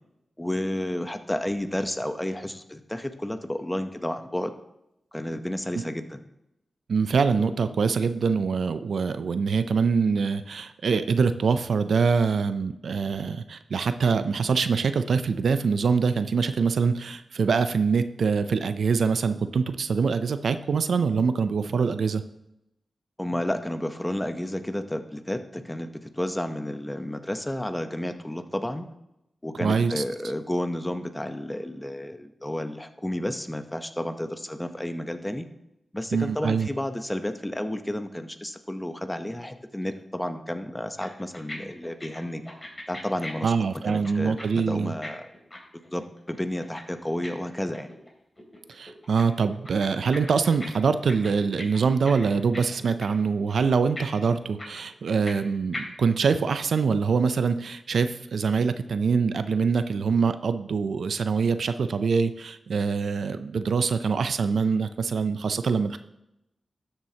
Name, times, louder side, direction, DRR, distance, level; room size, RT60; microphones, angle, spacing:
voice 1, 0.4-4.5 5.1-6.2 23.2-28.9 29.4-35.5 35.9-42.4 42.9-43.5 43.9-45.3 45.7-47.9, left 1 dB, 10° left, 8 dB, 0.8 m, -31 dB
voice 2, 6.9-22.2 29.6-30.0 36.1-36.7 43.4-44.9 48.7-66.0, right 5 dB, 80° right, 11 dB, 0.5 m, -24 dB
sound 1, 40.7-40.8 41.0-41.5 41.8-44.4 44.7-48.1 48.4-49.2 49.5-50.7 50.9-52.7 53.0-53.2 53.5-53.6 54.0-55.5 55.7-55.8, left 1 dB, 30° left, 2.8 m, -39 dB
12.5 x 7.4 x 2.9 m, 0.86 s
cardioid pair, 65°, 0 cm